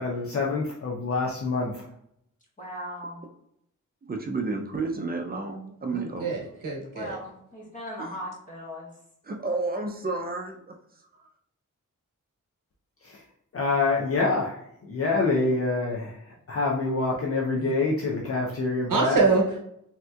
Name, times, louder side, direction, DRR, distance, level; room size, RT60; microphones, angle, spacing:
voice 1, 0.0-1.8 13.0-13.2 13.5-19.2, left 3 dB, 45° left, -3 dB, 0.5 m, -26 dB
voice 2, 2.6-3.2 6.9-8.9, equal, 25° left, -4 dB, 1.2 m, -38 dB
voice 3, 4.1-6.3 8.0-8.1 9.2-11.3 17.6-17.7, right 3 dB, 30° right, 3 dB, 0.4 m, -32 dB
voice 4, 5.9-7.2 18.9-19.6, right 4 dB, 80° right, 0 dB, 0.9 m, -25 dB
3.4 x 2.8 x 2.2 m, 0.74 s
wide cardioid pair, 105°, 32 cm